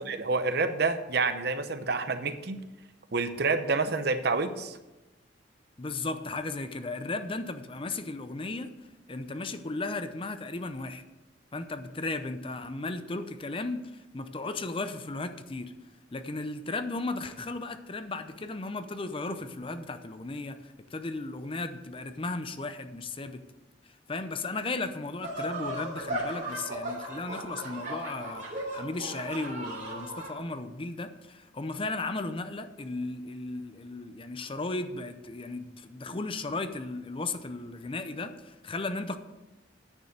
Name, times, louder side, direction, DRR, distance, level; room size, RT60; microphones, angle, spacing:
voice 1, 0.0-2.6 3.1-4.8, right 4 dB, 55° right, 10 dB, 0.8 m, -28 dB
voice 2, 5.8-8.7 9.1-11.0 11.5-15.7 16.1-23.4 23.9-39.2, left 3 dB, 30° left, 10 dB, 0.6 m, -35 dB
sound 1, 25.2-30.3, right 1 dB, 40° right, 3.1 m, -36 dB
9.7 x 6.8 x 6.6 m, 1.0 s
head